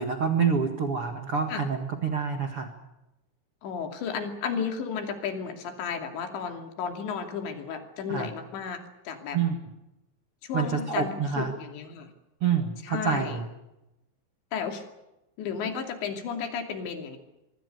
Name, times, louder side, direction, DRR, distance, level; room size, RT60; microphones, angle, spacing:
voice 1, 0.0-2.7 8.1-8.3 9.3-9.6 10.5-11.5 12.4-13.4, right 6 dB, 75° right, 5 dB, 1.2 m, -27 dB
voice 2, 3.6-9.4 10.4-12.1 12.8-13.4 14.5-14.9 15.4-17.2, left 6 dB, 65° left, 5 dB, 4.7 m, -33 dB
24.5 x 24.0 x 6.8 m, 0.94 s
omnidirectional pair, 5.9 m